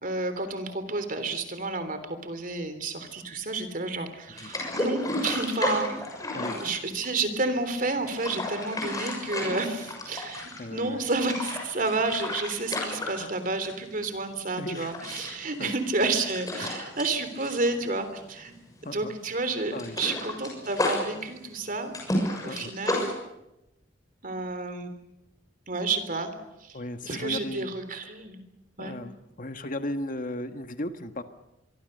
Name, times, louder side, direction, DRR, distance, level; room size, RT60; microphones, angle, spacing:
voice 1, 0.0-5.9 6.4-18.5 18.9-21.9 22.4-23.1 24.2-24.9 25.7-26.3 26.6-26.8 27.0-28.4 28.8-28.9, right 3 dB, 50° right, 9 dB, 3.4 m, -30 dB
sound 1, 4.4-7.4 7.9-10.7 11.0-13.9 14.2-14.4 14.7-18.5 18.8-19.0 19.3-23.1, left 1 dB, 20° left, 6.6 m, -32 dB
voice 2, 10.6-11.0 13.2-13.3 14.6-15.0 15.6-15.7 16.6-16.7 18.8-19.1 19.7-20.0 22.5-22.7 26.7-27.7 28.8-31.2, left 1 dB, 45° left, 8 dB, 1.6 m, -36 dB
24.5 x 24.0 x 6.8 m, 0.92 s
head